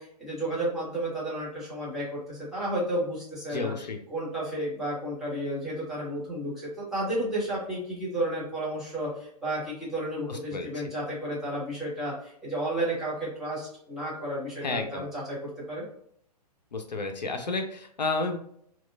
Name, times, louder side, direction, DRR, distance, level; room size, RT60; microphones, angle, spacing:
voice 1, 0.0-3.7 4.1-15.4 15.7-15.9, right 1 dB, ahead, -9 dB, 1.2 m, -32 dB
voice 2, 3.5-4.0 10.3-10.7 14.6-15.0 16.7-18.4, left 3 dB, 85° left, 5 dB, 0.5 m, -31 dB
2.9 x 2.2 x 2.3 m, 0.67 s
figure-of-eight pair, 120°, 21 cm